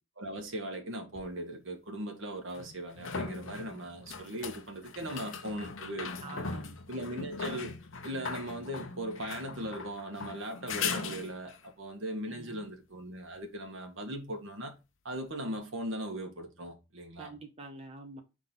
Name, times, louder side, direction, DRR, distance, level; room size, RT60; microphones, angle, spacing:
voice 1, 0.2-6.4 6.9-7.7 8.0-14.7 15.0-17.3, right 1 dB, 60° right, 1.4 m, -39 dB
sound 1, 1.2-1.3 2.5-11.7 15.1-15.2, left 5 dB, 65° left, 0.9 m, -39 dB
voice 2, 6.2-6.8 12.3-12.6 17.2-18.2, right 3 dB, 30° right, 0.9 m, -46 dB
4.9 x 3.8 x 5.7 m
head